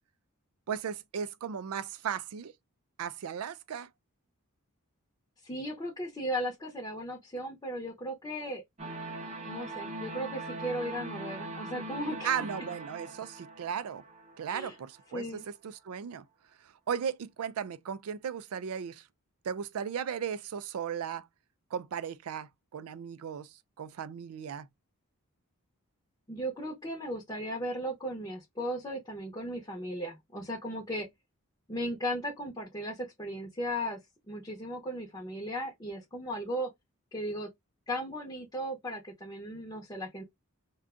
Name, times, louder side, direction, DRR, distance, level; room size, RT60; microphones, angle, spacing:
voice 1, 0.7-2.5 3.0-3.9 12.2-14.0 14.4-15.2 15.6-16.3 16.9-19.0 19.4-21.3 21.7-24.7, right 7 dB, 80° right, 0.4 m, -36 dB
voice 2, 5.4-8.6 9.5-12.3 14.5-14.7 15.1-15.5 26.3-31.1 31.7-34.0 34.3-36.7 37.1-37.5 37.9-40.2, equal, 20° left, 0.7 m, -36 dB
sound 1, 8.8-14.8, right 2 dB, 30° right, 0.7 m, -41 dB
2.5 x 2.3 x 3.5 m
head